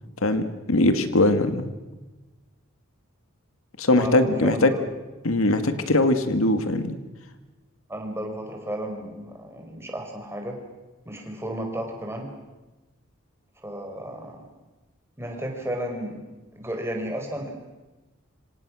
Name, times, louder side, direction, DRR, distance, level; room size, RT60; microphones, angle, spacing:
voice 1, 0.2-1.7 3.8-4.7 5.2-7.0, left 2 dB, 85° left, 9 dB, 1.9 m, -21 dB
voice 2, 3.9-4.8 7.9-10.6 11.0-12.3 13.6-14.4 15.2-16.2 16.5-17.5, right 1 dB, 10° right, 3 dB, 4.6 m, -33 dB
26.5 x 26.0 x 6.3 m, 1.1 s
head